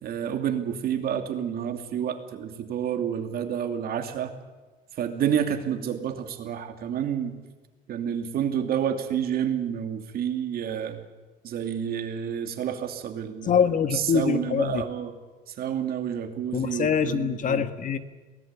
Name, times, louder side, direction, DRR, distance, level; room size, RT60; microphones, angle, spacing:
voice 1, 0.0-4.3 5.0-7.3 7.9-11.0 11.4-13.5 13.9-15.1 15.5-17.7, right 9 dB, 65° right, 6 dB, 2.8 m, -29 dB
voice 2, 13.5-14.8 16.5-18.0, left 7 dB, 50° left, 10 dB, 1.6 m, -24 dB
23.0 x 18.5 x 8.4 m, 1.3 s
cardioid pair, 110°, 17 cm